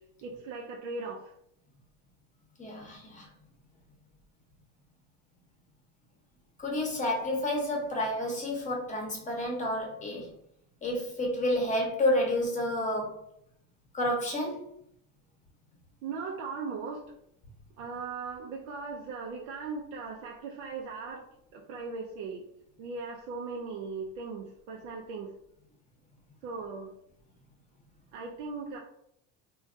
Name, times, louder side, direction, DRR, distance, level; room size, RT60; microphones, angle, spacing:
voice 1, 0.2-1.2 16.0-17.0 17.8-21.2 21.5-22.5 22.8-25.3 26.4-26.9 28.1-28.8, right 4 dB, 85° right, -1 dB, 0.5 m, -38 dB
voice 2, 2.6-3.3 6.6-10.3 10.8-13.2 13.9-14.7, left 1 dB, 20° left, 0 dB, 0.8 m, -30 dB
3.2 x 2.3 x 2.5 m, 0.73 s
supercardioid pair, 115°, 36 cm